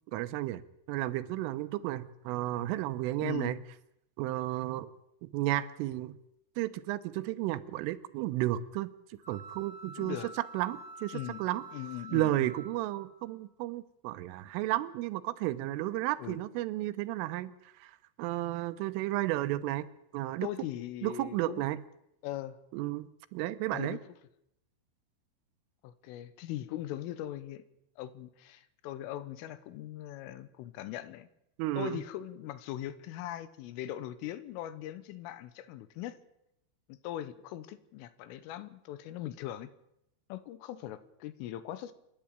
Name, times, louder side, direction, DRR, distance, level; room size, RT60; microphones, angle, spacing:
voice 1, 0.1-0.6 0.9-3.6 4.2-4.9 5.2-6.2 6.6-10.2 10.5-11.6 12.1-19.9 20.1-20.5 21.0-21.8 22.7-24.0 31.6-32.0, right 15 dB, 85° right, 13 dB, 3.4 m, -33 dB
voice 2, 3.2-3.6 10.0-10.3 11.1-11.4 11.7-12.4 16.2-16.4 20.4-21.7 22.2-22.6 23.7-24.0 25.8-27.6 28.0-31.3 31.8-36.2 36.9-39.7 40.3-41.9, left 13 dB, 90° left, 14 dB, 3.6 m, -40 dB
sound 1, 9.2-13.3, right 3 dB, 25° left, 4.5 m, -48 dB
27.5 x 11.0 x 8.9 m, 0.80 s
omnidirectional pair, 5.7 m